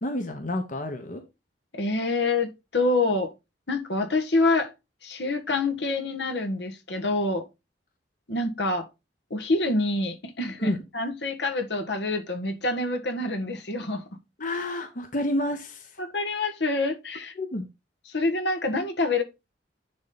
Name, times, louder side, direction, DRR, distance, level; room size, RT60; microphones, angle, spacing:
voice 1, 0.0-1.2 10.6-10.8 14.4-16.0 17.3-17.7, left 1 dB, 50° left, 1.2 m, -30 dB
voice 2, 1.7-3.3 3.7-4.7 5.0-7.4 8.3-8.9 9.3-14.0 16.0-17.3 18.1-19.2, left 2 dB, 70° left, 1.5 m, -26 dB
10.5 x 3.9 x 4.2 m
head